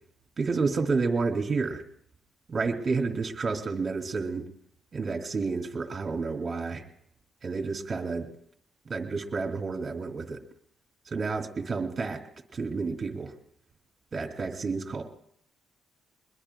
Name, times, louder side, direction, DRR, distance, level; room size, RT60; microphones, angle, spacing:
voice 1, 0.4-1.8 2.5-4.5 4.9-6.8 7.4-8.3 8.9-10.4 11.1-12.2 12.5-13.3 14.1-15.0, right 4 dB, 35° right, 4 dB, 2.6 m, -30 dB
23.5 x 21.0 x 2.3 m, 0.67 s
cardioid pair, 90°, 0 cm